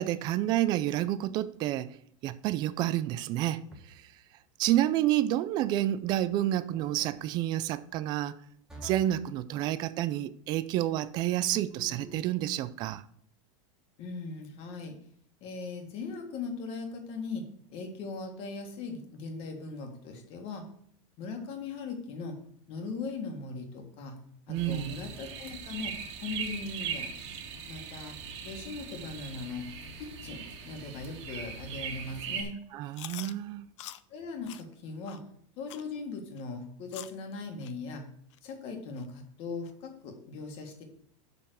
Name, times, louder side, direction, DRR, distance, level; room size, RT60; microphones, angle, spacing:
voice 1, 0.0-2.0 2.2-3.6 4.6-8.4 8.8-13.0 24.5-25.0 32.7-33.7, right 13 dB, 25° right, 0.4 m, -29 dB
sound 1, 3.7-4.2 6.7-7.2 8.7-9.2 11.7-12.4, equal, 5° right, 1.3 m, -47 dB
voice 2, 14.0-14.9 15.4-20.7 21.2-22.4 22.7-24.2 24.5-27.1 27.7-28.1 28.4-29.7 30.0-32.5 34.1-35.2 35.6-38.1 38.4-40.8, left 4 dB, 35° left, 1.7 m, -39 dB
sound 2, 24.5-32.4, right 6 dB, 60° right, 1.7 m, -40 dB
Chewing mastication, 32.9-33.3 33.8-34.0 34.5-34.6 35.1-35.2 35.7-35.9 36.4-36.5 36.9-37.2 37.6-37.7 38.3-38.4 39.0-39.1 39.7-39.8, left 13 dB, 65° left, 0.6 m, -44 dB
6.9 x 5.6 x 6.2 m
supercardioid pair, 170°, 17 cm